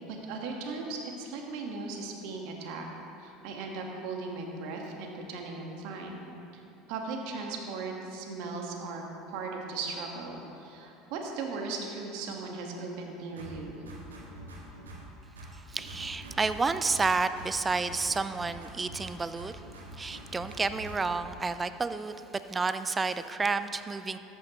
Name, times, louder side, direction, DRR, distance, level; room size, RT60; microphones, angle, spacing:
voice 1, 0.1-2.9 3.2-6.2 6.5-6.6 6.9-13.8, right 3 dB, 65° right, 1 dB, 1.4 m, -37 dB
sound 1, 13.4-15.1 15.4-17.1 17.4-19.1 19.4-21.2, right 1 dB, 90° right, 1.5 m, -45 dB
voice 2, 15.7-19.5 20.0-22.1 22.5-24.2, right 4 dB, 20° right, 12 dB, 0.5 m, -30 dB
13.5 x 8.8 x 3.0 m, 2.8 s
hypercardioid pair, 75°, 0 cm